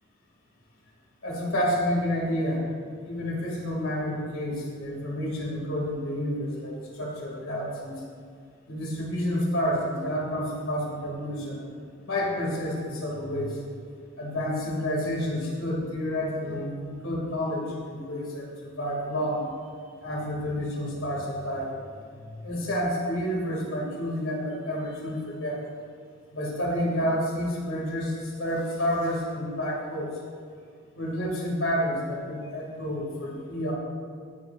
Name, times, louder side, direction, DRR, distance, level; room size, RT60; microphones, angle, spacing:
voice 1, 1.2-2.6 3.0-8.0 8.7-11.6 12.0-13.6 14.2-19.5 20.0-21.7 22.1-25.6 26.3-30.2 30.9-33.7, equal, 85° left, -3 dB, 2.5 m, -29 dB
18.5 x 7.0 x 2.6 m, 2.1 s
head